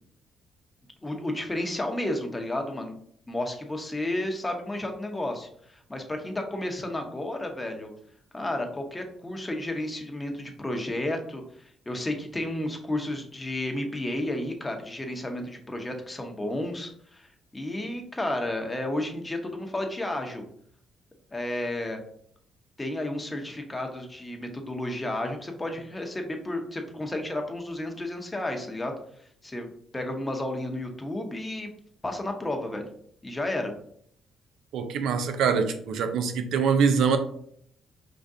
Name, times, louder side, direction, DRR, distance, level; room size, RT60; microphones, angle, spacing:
voice 1, 1.0-2.9 3.3-7.9 8.3-20.4 21.3-22.0 22.8-28.9 29.4-29.7 29.9-31.7 32.0-32.9 33.2-33.7, left 1 dB, 15° left, 0.9 m, -32 dB
voice 2, 34.7-37.2, right 6 dB, 80° right, 0.5 m, -24 dB
5.0 x 3.7 x 2.7 m
cardioid pair, 90°, 0 cm